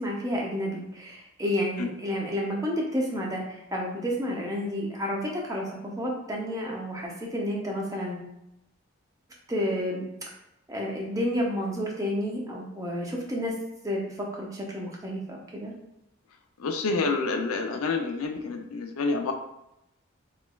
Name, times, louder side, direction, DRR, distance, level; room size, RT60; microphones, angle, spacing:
voice 1, 0.0-8.4 9.5-10.0 10.7-13.5 13.8-15.7, equal, 15° right, -2 dB, 0.5 m, -30 dB
voice 2, 16.6-19.3, left 4 dB, 90° left, 4 dB, 0.4 m, -28 dB
3.2 x 2.9 x 2.2 m, 0.86 s
head